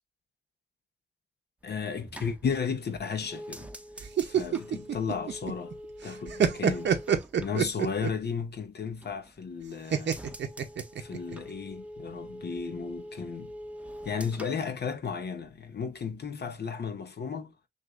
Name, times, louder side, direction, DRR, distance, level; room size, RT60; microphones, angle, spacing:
voice 1, 1.6-3.7 4.2-5.7 6.0-6.9 7.4-10.2 11.0-13.5 14.0-17.5, left 6 dB, 65° left, 0.8 m, -34 dB
sound 1, 1.6-8.4 8.8-9.5 9.8-15.5 15.8-16.3, equal, 5° right, 0.7 m, -45 dB
sound 2, 4.0-5.7 6.0-8.3 9.9-11.4, right 8 dB, 75° right, 0.7 m, -27 dB
6.2 x 2.5 x 2.5 m
cardioid pair, 60°, 19 cm